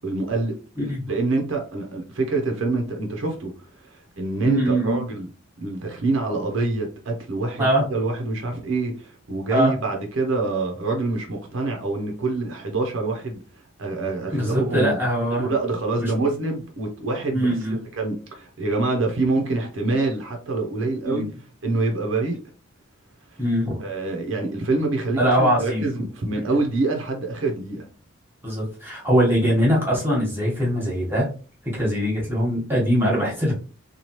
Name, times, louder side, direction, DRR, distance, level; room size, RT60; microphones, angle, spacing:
voice 1, 0.0-0.6 1.1-5.3 5.6-15.0 15.3-21.3 21.6-22.4 23.3-23.4 23.8-27.9, right 3 dB, 70° right, 0.7 m, -26 dB
voice 2, 0.8-1.1 4.4-5.0 7.6-7.8 9.5-9.7 14.3-15.5 16.0-16.1 17.3-17.8 21.0-21.3 23.4-23.8 25.2-25.9 28.4-31.3 31.7-33.5, equal, 10° right, 1.1 m, -22 dB
3.0 x 2.3 x 2.8 m
head